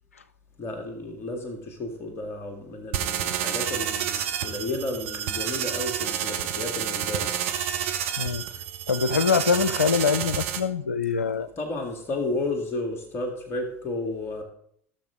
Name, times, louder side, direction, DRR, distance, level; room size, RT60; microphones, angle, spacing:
voice 1, 0.6-7.3 11.6-14.4, left 2 dB, 35° left, 3 dB, 2.0 m, -32 dB
sound 1, 2.9-10.6, right 9 dB, 70° right, 1.1 m, -29 dB
voice 2, 8.9-11.5, left 6 dB, 85° left, 16 dB, 0.5 m, -24 dB
17.0 x 6.8 x 3.7 m, 0.66 s
figure-of-eight pair, 75°, 7 cm